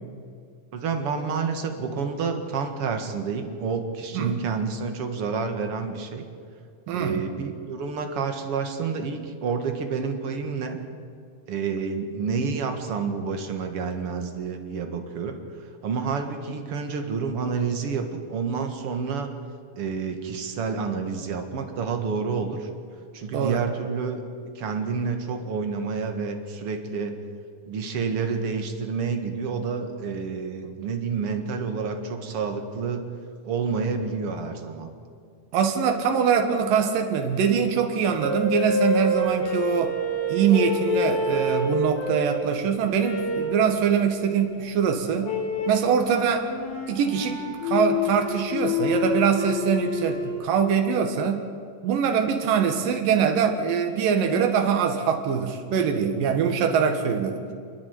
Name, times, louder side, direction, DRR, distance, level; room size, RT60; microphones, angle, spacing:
voice 1, 0.7-6.2 6.9-10.8 11.5-15.4 15.8-19.3 19.8-22.7 23.1-24.2 24.6-27.2 27.7-33.1 33.4-34.9, right 5 dB, 50° right, 5 dB, 2.5 m, -29 dB
voice 2, 6.9-7.2 23.3-23.6 35.5-39.9 40.3-45.3 45.7-46.5 46.9-51.4 51.8-57.4, right 7 dB, 85° right, 5 dB, 3.1 m, -23 dB
sound 1, 38.2-42.4 43.0-43.6 45.2-45.9 46.4-50.4, left 2 dB, 70° left, 5.0 m, -27 dB
30.0 x 10.0 x 9.5 m, 2.3 s
omnidirectional pair, 3.9 m